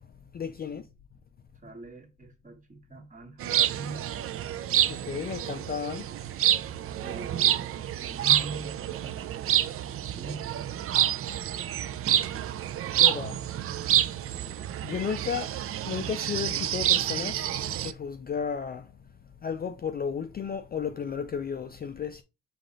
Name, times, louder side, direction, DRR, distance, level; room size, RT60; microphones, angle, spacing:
voice 1, 0.3-0.8 4.9-6.1 12.3-12.4 13.0-13.4 14.8-15.6 15.9-17.5 17.8-18.9 19.4-22.2, left 7 dB, 30° left, 0.4 m, -33 dB
voice 2, 1.5-4.1 7.0-11.9 12.9-14.3 14.6-14.7, right 3 dB, 25° right, 1.4 m, -44 dB
sound 1, 3.4-17.9, right 11 dB, 50° right, 0.4 m, -28 dB
4.8 x 2.5 x 3.9 m
cardioid pair, 90°, 30 cm